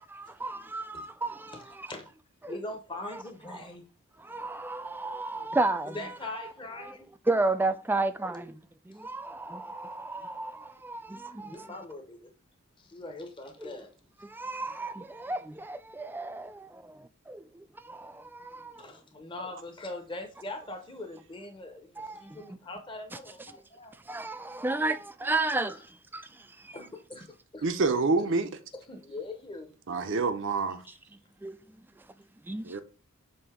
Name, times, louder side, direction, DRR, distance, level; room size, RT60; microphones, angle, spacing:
voice 1, 0.1-1.9 2.4-2.5 3.1-3.2 3.5-3.6 4.2-6.1 6.4-6.5 6.8-6.9 7.3-8.6 8.9-11.7 13.6-13.8 14.2-16.5 17.3-18.9 22.0-22.5 23.1-23.2 24.1-25.8 26.1-26.8 31.4-31.6 32.4-32.8, right 2 dB, 10° right, 0.3 m, -33 dB
voice 2, 2.5-3.9 5.9-7.1 11.4-12.3 12.8-13.9 18.8-23.9 26.7-27.7 28.9-29.7 30.8-30.9, left 2 dB, 20° left, 0.9 m, -42 dB
voice 3, 27.6-28.5 29.9-30.8 32.6-32.8, right 3 dB, 60° right, 0.6 m, -27 dB
7.7 x 2.7 x 4.9 m
head